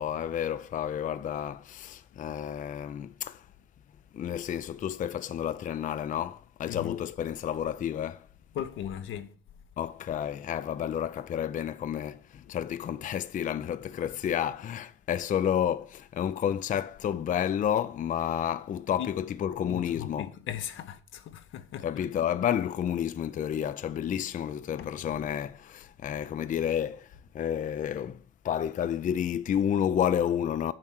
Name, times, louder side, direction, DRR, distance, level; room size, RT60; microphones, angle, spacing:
voice 1, 0.0-3.5 4.1-8.3 9.8-20.3 21.8-30.7, left 9 dB, 40° left, 0.4 m, -30 dB
voice 2, 6.7-7.0 8.5-9.3 19.0-19.1 19.7-22.0 24.8-25.2, left 10 dB, 80° left, 0.8 m, -38 dB
7.4 x 4.4 x 6.2 m
cardioid pair, 90°, 20 cm